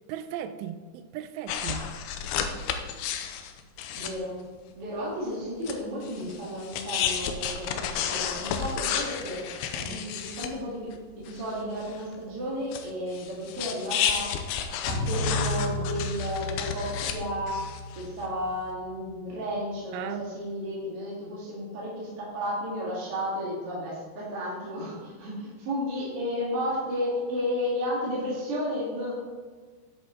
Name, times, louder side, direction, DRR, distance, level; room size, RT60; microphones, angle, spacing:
voice 1, 0.1-1.9 19.9-20.2, right 9 dB, 85° right, 10 dB, 2.6 m, -36 dB
sound 1, 1.5-4.1 5.6-5.8 6.0-10.5 10.9-11.0 11.2-12.2 12.7-17.2 17.5-18.3, left 8 dB, 80° left, 2.4 m, -32 dB
voice 2, 3.9-4.4 4.8-10.9 11.3-14.3 14.8-17.6 18.0-29.1, equal, 45° right, -6 dB, 2.2 m, -33 dB
sound 2, 14.9-19.3, left 1 dB, 55° left, 3.8 m, -33 dB
10.5 x 8.1 x 3.8 m, 1.5 s
omnidirectional pair, 5.1 m